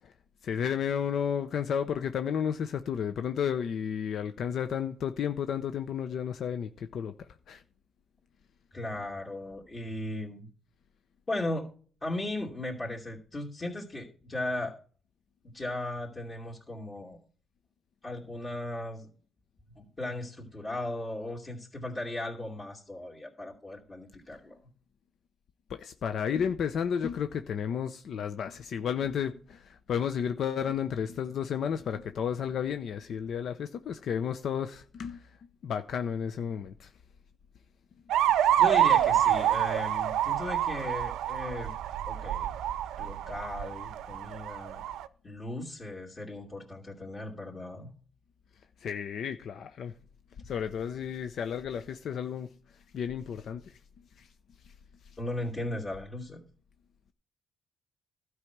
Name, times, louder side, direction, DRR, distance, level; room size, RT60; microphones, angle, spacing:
voice 1, 0.4-7.6 25.7-35.2 35.6-36.9 48.8-49.9 50.4-52.5 52.9-53.8 54.2-54.3, left 8 dB, 65° left, 0.7 m, -32 dB
voice 2, 8.7-10.5 11.3-11.7 12.0-14.8 15.5-17.2 18.0-19.1 19.8-24.6 38.6-41.8 42.1-42.5 43.0-44.8 45.2-47.9 55.2-56.4, left 1 dB, 30° left, 2.7 m, -37 dB
sound 1, 38.1-45.1, right 11 dB, 85° right, 0.6 m, -27 dB
12.0 x 4.8 x 7.9 m
cardioid pair, 90°, 0 cm